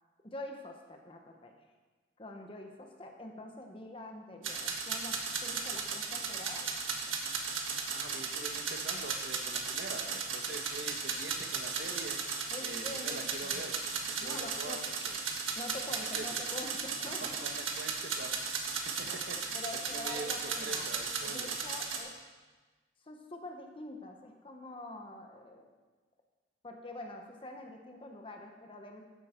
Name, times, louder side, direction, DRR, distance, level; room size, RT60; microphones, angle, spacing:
voice 1, 0.2-1.5 2.2-7.0 12.5-13.9 14.2-14.8 15.6-17.4 19.0-19.2 19.5-20.9 21.2-22.1 23.0-25.7 26.6-29.0, left 1 dB, 25° left, 3 dB, 0.9 m, -46 dB
sound 1, 4.4-22.0, right 5 dB, 85° right, 1.5 m, -36 dB
voice 2, 7.9-14.8 15.0-15.3 15.9-16.4 17.0-19.6 19.9-21.5, right 2 dB, 60° right, 5 dB, 1.1 m, -45 dB
13.0 x 9.2 x 4.4 m, 1.3 s
head